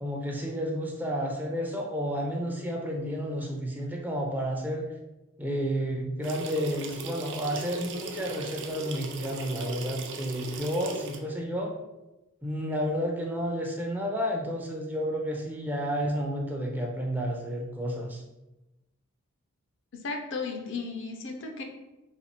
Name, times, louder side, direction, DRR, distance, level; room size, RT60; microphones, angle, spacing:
voice 1, 0.0-4.8 5.4-11.7 12.4-18.2, equal, 10° right, 0 dB, 0.5 m, -31 dB
sound 1, 6.2-11.2, right 3 dB, 60° right, 0.5 m, -38 dB
voice 2, 19.9-21.6, left 4 dB, 60° left, 3 dB, 0.6 m, -35 dB
4.1 x 2.4 x 4.2 m, 0.99 s
head